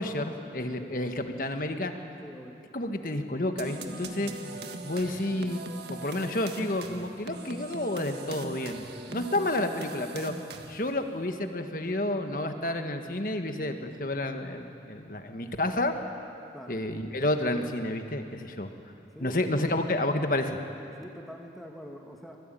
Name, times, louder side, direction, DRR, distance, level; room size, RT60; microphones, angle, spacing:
voice 1, 0.0-1.9 2.7-4.3 4.8-10.3 10.7-15.9 16.7-18.7 19.2-20.6, left 1 dB, 50° left, 6 dB, 1.6 m, -30 dB
voice 2, 2.2-2.6 9.1-9.2 16.5-16.8 19.1-19.5 21.0-22.4, equal, ahead, 1 dB, 2.1 m, -45 dB
sound 1, 3.6-11.0, right 2 dB, 70° right, 1.6 m, -40 dB
25.5 x 18.5 x 9.2 m, 2.7 s
head